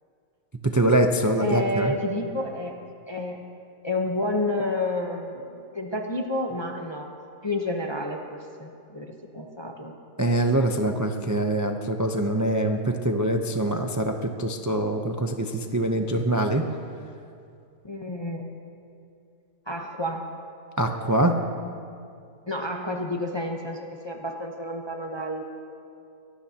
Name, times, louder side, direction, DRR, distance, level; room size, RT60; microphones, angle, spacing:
voice 1, 0.6-1.9 10.2-16.6 20.8-21.4, right 1 dB, 25° right, 4 dB, 0.3 m, -24 dB
voice 2, 1.4-3.4 3.8-7.1 7.4-9.9 15.2-15.3 17.8-18.5 19.7-20.3 22.5-25.4, left 1 dB, 20° left, 2 dB, 0.8 m, -30 dB
24.5 x 18.5 x 2.9 m, 2.5 s
omnidirectional pair, 1.5 m